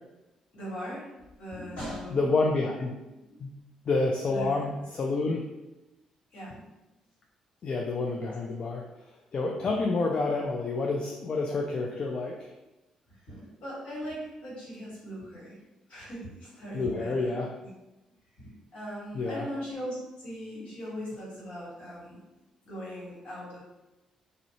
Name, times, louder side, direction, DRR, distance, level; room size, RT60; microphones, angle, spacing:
voice 1, 0.5-1.1 1.4-2.3 4.3-4.5 6.3-6.6 9.6-9.8 13.1-15.6 15.9-17.4 18.4-22.2 22.6-23.6, equal, 70° left, -7 dB, 1.3 m, -39 dB
voice 2, 2.1-2.9 3.4-3.6 3.9-5.4 7.6-8.8 9.3-12.5 16.7-17.5 19.1-19.5, left 3 dB, 50° left, 0 dB, 0.3 m, -28 dB
2.4 x 2.0 x 2.8 m, 1.0 s
supercardioid pair, 65°, 2 cm